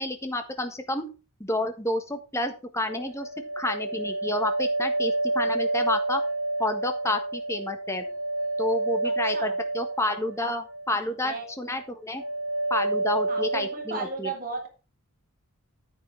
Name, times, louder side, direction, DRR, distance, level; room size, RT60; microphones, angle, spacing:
voice 1, 0.0-6.2 6.6-8.0 8.6-12.2 12.7-14.3, left 1 dB, 15° left, 7 dB, 1.4 m, -30 dB
sound 1, 2.9-11.0 11.3-11.8 12.2-13.9, right 2 dB, 70° right, 4.2 m, -29 dB
voice 2, 9.0-9.6 11.0-11.5 13.3-14.7, right 3 dB, 40° right, 1 dB, 3.5 m, -35 dB
9.8 x 8.8 x 3.4 m, 0.31 s
head